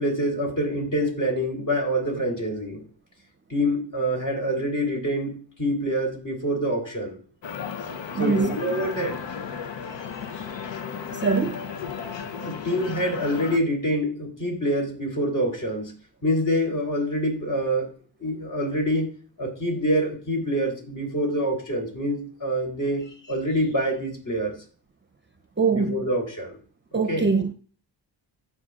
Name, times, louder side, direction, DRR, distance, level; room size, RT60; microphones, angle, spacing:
voice 1, 0.0-2.8 3.5-7.2 8.2-9.2 10.1-10.4 12.3-15.9 16.2-17.9 18.2-19.1 19.4-24.6 25.7-26.6 27.1-27.3, equal, 45° left, 3.8 m, -26 dB
sound 1, 7.4-13.6, left 6 dB, 75° left, 0.9 m, -34 dB
voice 2, 8.1-8.6 11.1-11.7 25.6-26.1 26.9-27.5, right 4 dB, 25° right, 0.6 m, -23 dB
15.5 x 5.1 x 2.5 m
cardioid pair, 75°, 43 cm